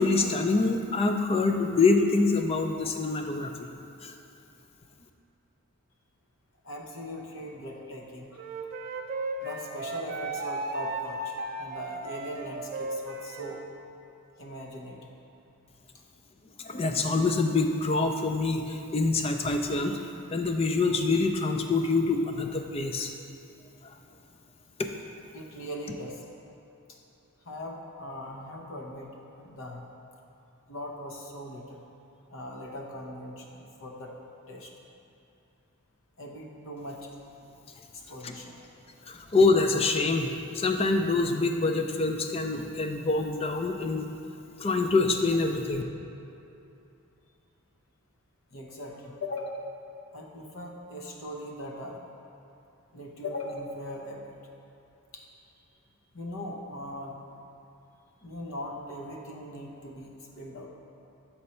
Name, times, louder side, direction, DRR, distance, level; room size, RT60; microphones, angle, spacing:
voice 1, 0.0-3.7 4.0-4.1 16.6-20.0 20.3-23.1 24.8-24.9 38.2-38.3 39.1-44.1 44.6-45.8, left 3 dB, 25° left, 5 dB, 0.3 m, -25 dB
voice 2, 6.6-8.7 9.4-13.6 14.4-15.1 25.3-26.3 26.9-27.0 27.4-29.8 30.7-31.8 32.3-34.1 34.5-34.7 36.2-37.1 37.9-38.6 48.5-49.7 50.1-52.0 52.9-54.3 55.1-55.2 56.1-57.2 58.2-60.7, left 1 dB, 60° left, 0 dB, 0.8 m, -40 dB
Wind instrument woodwind instrument, 8.4-13.7, right 2 dB, 40° right, 0.4 m, -35 dB
7.6 x 4.4 x 4.2 m, 2.7 s
head